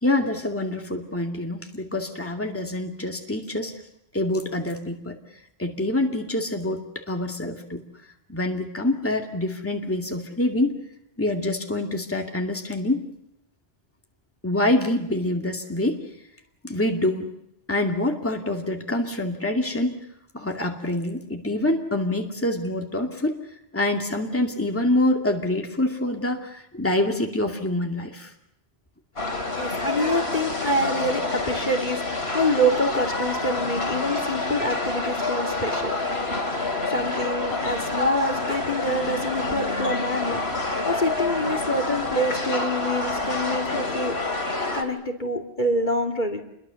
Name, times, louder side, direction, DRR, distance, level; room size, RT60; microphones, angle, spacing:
voice 1, 0.0-3.7 4.1-5.2 5.6-6.8 7.1-7.8 8.3-10.8 11.2-13.1 14.4-16.0 16.6-17.3 17.7-20.0 20.3-23.4 23.7-28.3, left 1 dB, 10° left, 2 dB, 2.4 m, -26 dB
sound 1, 29.2-44.8, left 2 dB, 75° left, 3.5 m, -27 dB
voice 2, 29.6-35.9 36.9-40.4 40.9-44.1 44.7-46.4, equal, 45° left, 3 dB, 2.7 m, -26 dB
28.5 x 22.5 x 7.0 m, 0.80 s
omnidirectional pair, 1.1 m